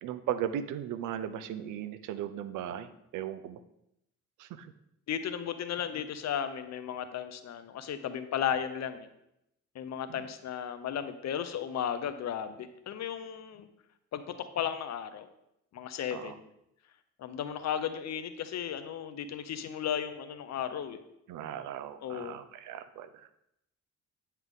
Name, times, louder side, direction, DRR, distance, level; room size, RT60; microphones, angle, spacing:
voice 1, 0.0-3.6 4.4-4.7 10.1-10.3 16.1-16.4 21.3-23.3, right 10 dB, 90° right, 12 dB, 0.6 m, -37 dB
voice 2, 5.1-9.1 9.7-13.7 14.1-15.3 15.7-16.5 17.2-21.0 22.0-22.4, left 9 dB, 60° left, 10 dB, 0.7 m, -35 dB
9.6 x 5.7 x 3.6 m, 0.81 s
cardioid pair, 90°, 30 cm